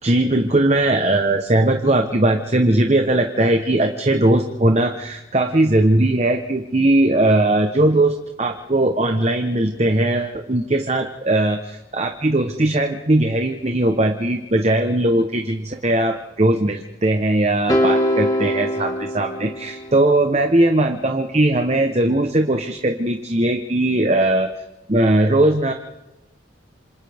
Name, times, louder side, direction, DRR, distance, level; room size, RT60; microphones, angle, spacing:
voice 1, 0.0-24.5 24.9-25.7, right 1 dB, 35° right, 5 dB, 1.0 m, -19 dB
sound 1, 17.7-20.1, equal, 20° left, 1.6 m, -22 dB
27.5 x 27.0 x 3.5 m, 1.0 s
head